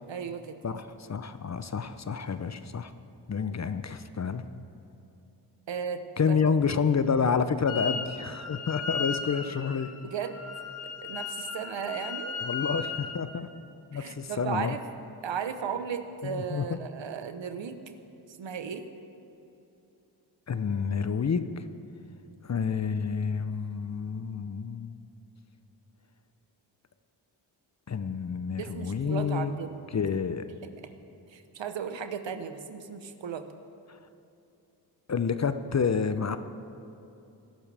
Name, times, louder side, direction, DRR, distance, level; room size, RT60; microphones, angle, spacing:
voice 1, 0.1-0.8 5.7-6.4 10.0-10.4 11.0-12.4 13.9-14.8 15.2-18.0 18.4-18.8 28.6-29.8 30.6-30.7 31.3-33.5, right 7 dB, 60° right, 9 dB, 1.1 m, -35 dB
voice 2, 0.6-2.9 3.3-4.4 6.2-9.9 12.4-13.5 13.9-14.8 16.2-16.8 20.5-21.6 22.4-24.9 27.9-29.5 29.9-30.4 33.9-34.0 35.1-36.4, left 6 dB, 35° left, 11 dB, 0.7 m, -29 dB
Wind instrument woodwind instrument, 7.7-8.1 8.3-13.1, left 5 dB, 75° left, 1.8 m, -36 dB
20.5 x 11.5 x 3.5 m, 2.8 s
supercardioid pair, 45°, 50 cm